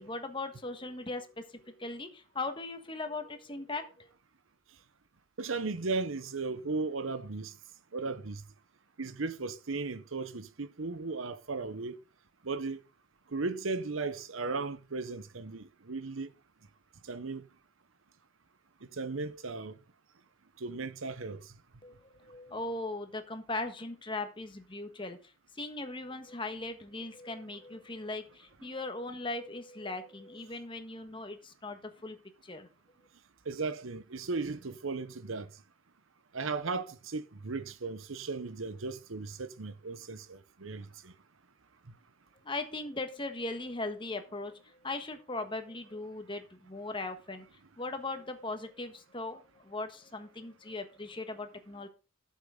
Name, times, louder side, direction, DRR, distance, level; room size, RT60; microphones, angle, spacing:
voice 1, 0.0-4.1 21.8-32.2 32.4-32.7 42.4-47.4 47.8-51.9, left 2 dB, 25° left, 1.4 m, -39 dB
voice 2, 5.4-7.5 7.9-8.4 9.0-12.0 12.4-12.8 13.3-16.3 17.1-17.4 18.9-19.8 20.6-21.5 33.5-35.5 36.3-41.1, right 3 dB, 75° right, 0.9 m, -36 dB
12.5 x 7.4 x 3.8 m
head